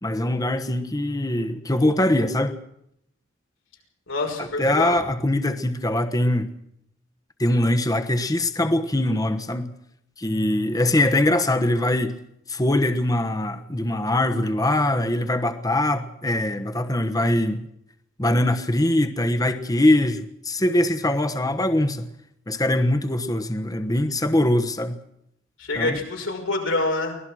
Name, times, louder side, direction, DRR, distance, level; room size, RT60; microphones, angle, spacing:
voice 1, 0.0-2.6 4.4-6.5 7.4-9.7 10.2-12.2 12.5-17.7 18.2-22.1 22.5-25.0 25.7-26.0, left 1 dB, 20° left, 7 dB, 1.2 m, -22 dB
voice 2, 4.1-5.0 25.6-27.2, left 2 dB, 90° left, 1 dB, 5.8 m, -26 dB
24.0 x 18.0 x 6.3 m, 0.76 s
head